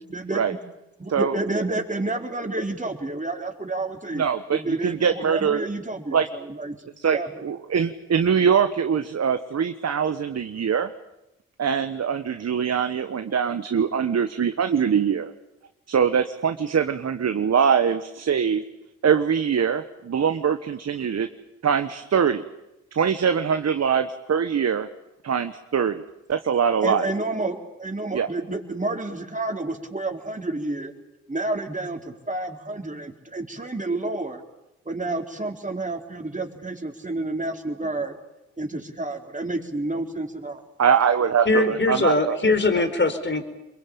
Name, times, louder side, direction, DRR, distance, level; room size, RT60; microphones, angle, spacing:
voice 1, 0.1-0.6 1.0-4.2 4.5-6.8 7.1-7.4 26.8-30.9 31.3-34.4 34.9-38.2 38.6-40.6, right 2 dB, 25° right, 3 dB, 4.3 m, -29 dB
voice 2, 4.1-5.6 6.1-6.2 7.0-10.9 11.6-15.3 15.9-18.6 19.0-21.3 21.6-22.4 22.9-24.9 25.2-26.0 26.3-27.1 28.1-28.3 40.8-42.4, right 7 dB, 55° right, 9 dB, 1.3 m, -23 dB
voice 3, 41.4-43.4, left 2 dB, 35° left, 8 dB, 4.4 m, -21 dB
27.5 x 22.5 x 8.7 m, 0.91 s
supercardioid pair, 40°, 32 cm